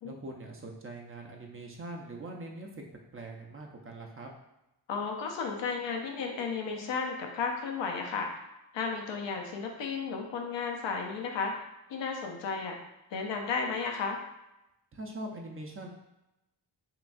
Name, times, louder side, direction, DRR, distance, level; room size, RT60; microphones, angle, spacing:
voice 1, 0.0-2.8 3.1-4.3 14.9-15.9, right 2 dB, 30° right, 1 dB, 0.5 m, -42 dB
voice 2, 4.9-8.4 8.7-11.5 11.9-12.8 13.1-14.2, left 5 dB, 85° left, 2 dB, 0.7 m, -33 dB
5.7 x 2.3 x 2.5 m, 0.90 s
wide cardioid pair, 155°, 43 cm